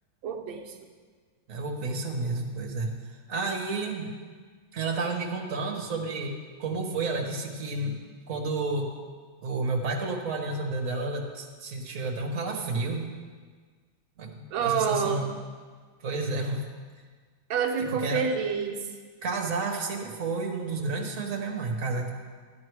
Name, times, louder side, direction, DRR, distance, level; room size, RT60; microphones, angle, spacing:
voice 1, 0.2-0.8 14.5-15.2 17.5-18.8, right 6 dB, 90° right, 1 dB, 1.7 m, -27 dB
voice 2, 1.5-2.9 3.3-4.1 4.7-6.3 6.6-8.0 8.3-8.9 9.4-13.1 14.2-15.3 16.0-16.6 17.8-18.3 19.2-22.1, right 3 dB, 45° right, 1 dB, 1.7 m, -31 dB
13.0 x 9.5 x 4.7 m, 1.5 s
omnidirectional pair, 2.1 m